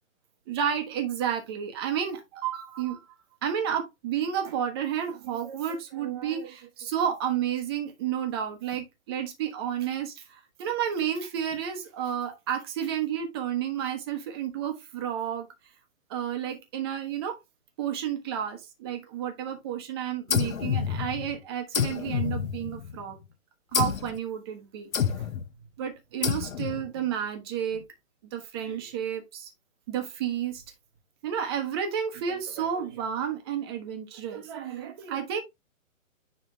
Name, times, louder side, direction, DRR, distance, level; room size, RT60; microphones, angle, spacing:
voice 1, 0.5-3.1 3.4-15.5 16.1-17.4 17.8-23.2 23.7-24.9 25.2-25.3 25.8-27.8 28.3-29.5 29.9-30.6 31.2-35.4, right 9 dB, 20° right, 1.0 m, -31 dB
sound 1, 20.3-21.4 21.7-23.0 23.7-24.2 24.9-25.5 26.2-26.9, left 8 dB, 90° left, 1.0 m, -28 dB
9.8 x 3.3 x 3.4 m
hypercardioid pair, 165°, 40 cm